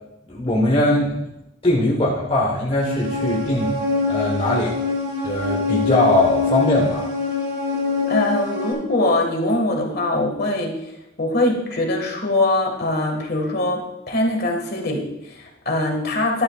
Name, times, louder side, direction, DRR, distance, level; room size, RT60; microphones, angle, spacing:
voice 1, 0.3-1.2 1.6-3.8 4.1-4.8 5.2-7.1, left 1 dB, 30° left, -3 dB, 1.2 m, -20 dB
sound 1, 2.8-8.7, left 4 dB, 45° right, 2.3 m, -24 dB
voice 2, 8.1-10.7 11.2-13.8 14.1-16.4, left 2 dB, 50° left, 1 dB, 1.7 m, -22 dB
12.0 x 10.5 x 2.4 m, 0.90 s
head